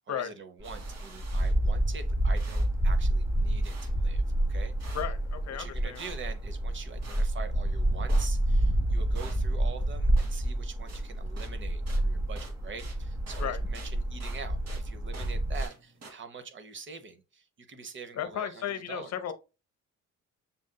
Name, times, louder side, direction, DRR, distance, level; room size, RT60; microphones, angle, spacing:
voice 1, 0.1-4.2 4.5-4.7 5.5-19.2, right 5 dB, 40° right, 0.9 m, -44 dB
sound 1, 0.6-15.7, right 1 dB, 10° right, 0.9 m, -28 dB
sound 2, 0.6-16.1, right 3 dB, 55° right, 1.6 m, -52 dB
voice 2, 4.9-6.0 13.4-13.6 18.1-19.3, left 9 dB, 60° left, 0.8 m, -34 dB
7.1 x 2.6 x 2.2 m
cardioid pair, 90°, 30 cm